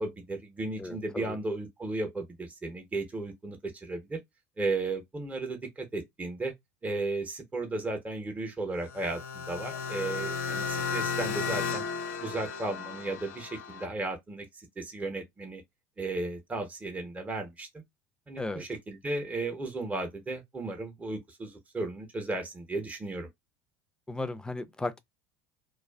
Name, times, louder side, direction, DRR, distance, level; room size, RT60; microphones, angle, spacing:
voice 1, 0.0-4.2 4.6-6.5 6.8-11.8 12.2-15.6 16.0-17.8 18.3-23.3, right 2 dB, 15° right, 0.8 m, -35 dB
voice 2, 0.8-1.4 18.4-18.7 24.1-25.0, left 2 dB, 10° left, 0.4 m, -35 dB
sound 1, 8.8-13.9, left 5 dB, 85° left, 0.5 m, -34 dB
2.4 x 2.3 x 2.3 m
hypercardioid pair, 85°, 8 cm